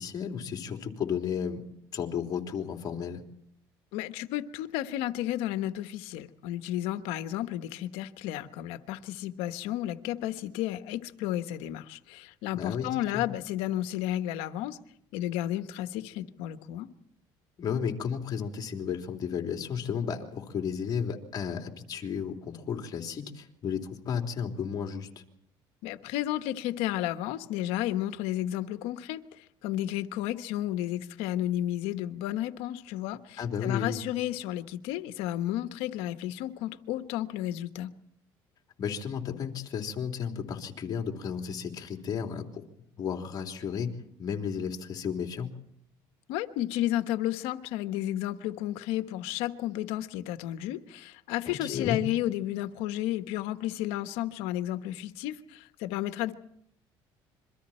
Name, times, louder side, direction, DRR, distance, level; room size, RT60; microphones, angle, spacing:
voice 1, 0.0-1.6 1.9-3.2 12.5-12.9 13.1-13.2 17.6-25.2 33.4-34.0 38.8-42.6 43.0-43.9 44.2-45.5 51.5-52.0, left 7 dB, 45° left, 3 dB, 3.4 m, -33 dB
voice 2, 3.9-14.8 15.1-16.9 25.8-37.9 46.3-56.4, left 13 dB, 85° left, 10 dB, 1.2 m, -32 dB
27.0 x 23.5 x 4.4 m, 0.71 s
cardioid pair, 115°, 9 cm